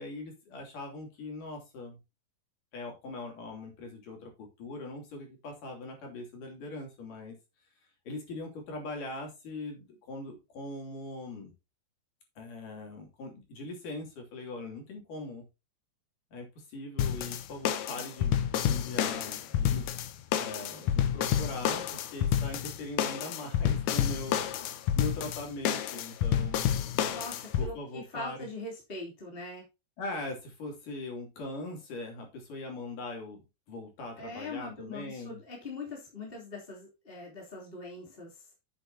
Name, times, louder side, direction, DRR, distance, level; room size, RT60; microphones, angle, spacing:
voice 1, 0.0-2.0 2.7-7.4 8.1-11.5 12.4-15.4 16.3-19.9 20.3-26.9 27.6-28.5 30.0-35.4, left 2 dB, 50° left, 1 dB, 4.3 m, -41 dB
sound 1, 17.0-27.7, left 10 dB, 80° left, 1.8 m, -29 dB
voice 2, 27.1-29.7 34.2-38.4, left 2 dB, 15° left, -3 dB, 2.4 m, -42 dB
9.9 x 8.7 x 2.8 m, 0.27 s
omnidirectional pair, 4.9 m